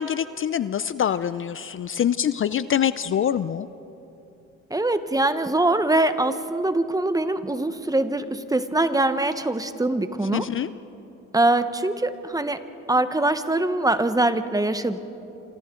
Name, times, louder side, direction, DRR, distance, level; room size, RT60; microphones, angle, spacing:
voice 1, 0.0-3.7 10.3-10.7, left 9 dB, 45° left, 15 dB, 0.5 m, -25 dB
voice 2, 4.7-10.4 11.3-12.6 12.9-15.0, right 2 dB, 10° right, 11 dB, 1.0 m, -23 dB
28.5 x 25.5 x 3.8 m, 3.0 s
cardioid pair, 90°, 30 cm